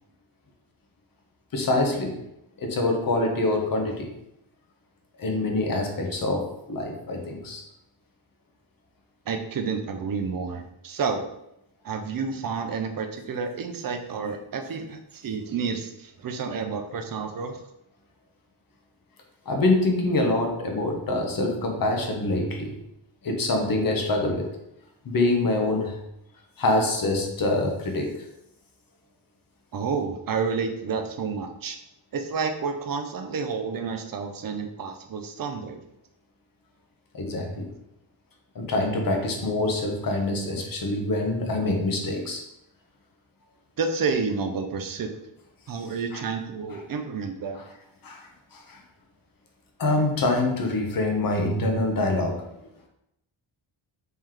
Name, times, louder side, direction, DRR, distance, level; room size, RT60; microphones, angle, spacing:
voice 1, 1.5-2.2 2.6-4.1 5.2-7.6 19.5-22.7 23.2-24.5 25.0-26.0 26.6-28.1 37.1-37.7 38.5-42.4 46.1-46.2 47.5-47.6 48.0-48.8 49.8-52.4, left 2 dB, 45° left, 2 dB, 0.8 m, -25 dB
voice 2, 9.3-11.3 11.8-17.6 29.7-31.8 32.1-35.8 43.8-45.1 45.7-47.6, right 5 dB, 45° right, 5 dB, 0.5 m, -30 dB
3.3 x 2.9 x 3.7 m, 0.82 s
wide cardioid pair, 135°, 48 cm